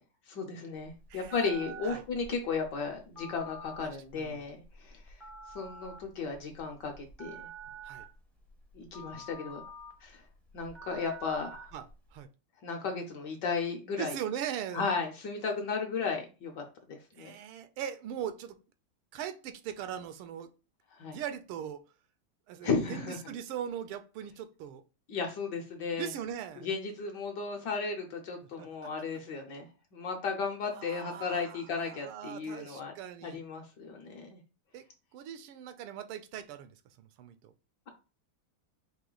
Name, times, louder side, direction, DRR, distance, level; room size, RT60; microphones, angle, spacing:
voice 1, 0.3-5.2 5.5-7.4 8.7-9.6 10.0-10.2 10.5-11.7 12.6-14.2 14.7-16.6 16.9-17.3 20.9-21.2 22.6-23.2 25.1-26.1 26.6-29.7 29.9-32.9 33.2-34.4, left 4 dB, 65° left, 1.2 m, -35 dB
Telephone, 0.7-12.2, right 2 dB, ahead, 0.4 m, -48 dB
voice 2, 1.1-1.5 1.8-2.0 3.8-4.5 7.8-8.1 11.7-11.9 12.1-12.3 14.0-14.8 17.1-18.6 19.1-20.5 21.0-21.8 22.5-24.8 25.9-26.7 28.6-28.9 30.6-33.4 34.7-34.9 35.1-37.5, right 9 dB, 80° right, 1.5 m, -40 dB
4.9 x 2.7 x 3.8 m
omnidirectional pair, 2.4 m